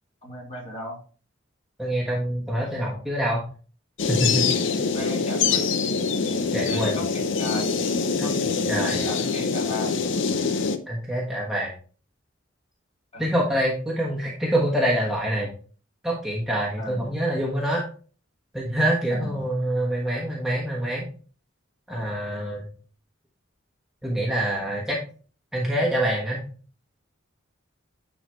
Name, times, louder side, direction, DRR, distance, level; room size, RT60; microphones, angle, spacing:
voice 1, 0.2-1.0 4.9-5.8 6.7-7.7 8.8-10.0 13.1-13.3 16.8-17.1 19.1-19.3, left 1 dB, 35° left, -3 dB, 2.8 m, -36 dB
voice 2, 1.8-3.4 4.1-4.5 6.5-6.9 8.2-9.0 10.9-11.7 13.2-15.5 16.0-17.8 18.5-21.1 21.9-22.7 24.0-25.0 25.5-26.4, right 1 dB, 5° right, -5 dB, 1.4 m, -25 dB
sound 1, 4.0-10.8, left 5 dB, 65° left, 0.7 m, -24 dB
9.7 x 4.0 x 3.1 m, 0.39 s
head